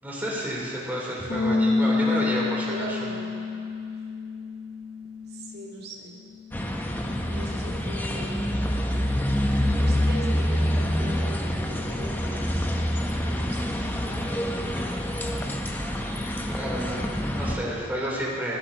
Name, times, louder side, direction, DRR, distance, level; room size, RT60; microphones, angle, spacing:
voice 1, 0.0-3.0 16.4-18.6, equal, 10° right, -6 dB, 3.4 m, -30 dB
Bass guitar, 1.3-7.5, left 3 dB, 50° left, 1.6 m, -29 dB
voice 2, 2.7-3.5 5.3-6.2 7.3-8.6 9.3-12.7 13.2-13.6 13.9-14.9, right 1 dB, 55° right, -2 dB, 2.2 m, -40 dB
sound 1, 6.5-17.6, equal, 10° left, 0.9 m, -26 dB
26.5 x 12.0 x 2.9 m, 2.5 s
head